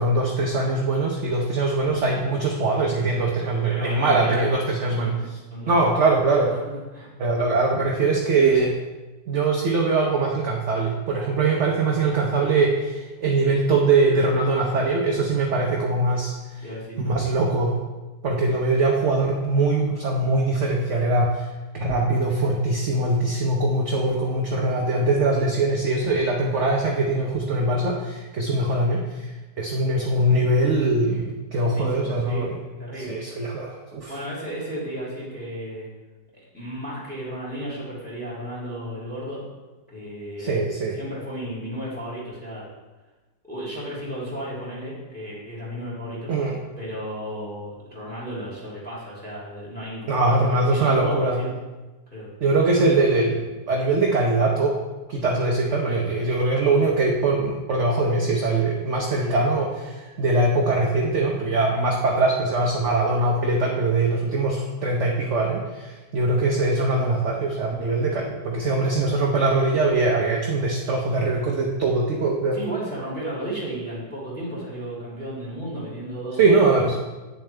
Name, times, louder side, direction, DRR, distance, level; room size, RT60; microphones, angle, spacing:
voice 1, 0.0-5.1 5.7-6.5 7.2-8.8 9.3-16.3 17.0-17.8 18.2-21.5 21.7-29.2 29.6-32.6 33.1-34.1 40.4-41.0 46.3-46.6 50.1-51.4 52.4-54.8 55.1-72.6 76.4-77.0, right 2 dB, 55° right, -1 dB, 0.9 m, -22 dB
voice 2, 3.7-4.5 4.8-6.0 6.5-7.1 16.6-17.0 31.6-32.5 32.8-33.2 34.1-35.9 36.3-39.4 39.9-40.6 40.9-42.6 43.5-46.5 46.8-51.5 52.1-52.3 59.2-59.4 72.5-76.8, equal, 5° left, -7 dB, 2.8 m, -34 dB
9.0 x 7.1 x 3.3 m, 1.2 s
omnidirectional pair, 1.9 m